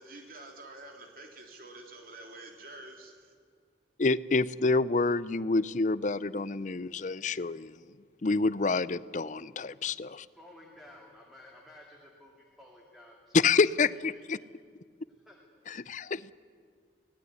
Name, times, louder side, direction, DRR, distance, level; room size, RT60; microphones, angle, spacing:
voice 1, 0.0-3.3, right 2 dB, 50° right, 3 dB, 3.4 m, -48 dB
voice 2, 4.0-7.8 8.2-10.3 13.3-14.4 15.7-16.3, left 3 dB, 45° left, 18 dB, 0.5 m, -28 dB
voice 3, 10.3-13.5 14.1-14.5 15.2-15.4, left 1 dB, ahead, -1 dB, 2.5 m, -54 dB
24.5 x 18.0 x 9.6 m, 2.1 s
head